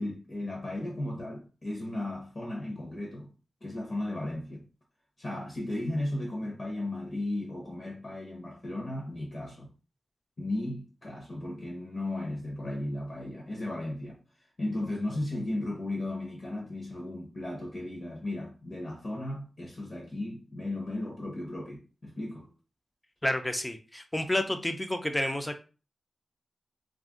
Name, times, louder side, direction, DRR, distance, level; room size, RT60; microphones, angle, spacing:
voice 1, 0.0-3.3 3.6-4.6 5.2-9.7 10.4-14.2 14.6-22.5, left 1 dB, 40° left, 0.8 m, -35 dB
voice 2, 23.2-25.6, left 1 dB, 15° left, 0.4 m, -30 dB
2.5 x 2.1 x 3.6 m
wide cardioid pair, 115°, 0 cm